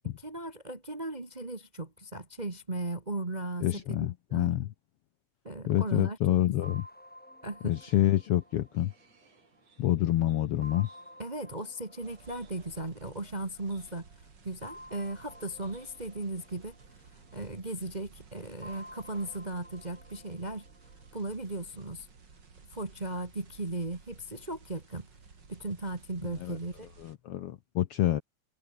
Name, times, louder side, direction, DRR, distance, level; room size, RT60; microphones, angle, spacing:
voice 1, 0.0-4.0 4.3-4.5 5.4-6.2 7.4-7.7 11.2-14.1 14.4-16.7 17.3-20.6 21.1-22.1 22.7-25.1 25.5-26.9, right 2 dB, 20° right, 1.1 m, -37 dB
voice 2, 3.6-4.7 5.7-6.8 7.6-8.9 9.8-10.9 26.4-26.6 27.0-28.2, left 13 dB, 70° left, 1.5 m, -27 dB
sound 1, 6.6-9.9 10.6-13.5 14.6-17.7 18.6-21.7, left 1 dB, 5° left, 1.7 m, -52 dB
sound 2, 7.7-19.5, right 5 dB, 85° right, 6.3 m, -64 dB
sound 3, 12.0-27.2, right 5 dB, 35° right, 3.3 m, -55 dB
omnidirectional pair, 3.4 m